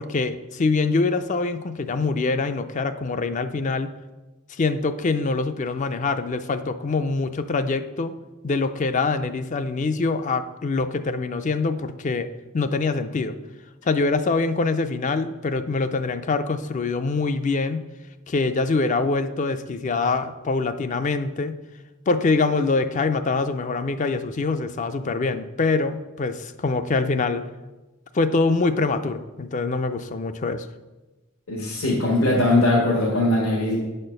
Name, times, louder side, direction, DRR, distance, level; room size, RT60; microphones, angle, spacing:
voice 1, 0.0-3.9 4.5-8.2 8.4-12.3 12.5-13.3 13.8-17.8 18.3-21.5 22.1-27.4 28.1-30.7, left 3 dB, 35° left, 11 dB, 0.4 m, -24 dB
voice 2, 31.5-33.8, left 1 dB, 80° left, -5 dB, 1.7 m, -20 dB
8.6 x 4.3 x 6.5 m, 1.2 s
head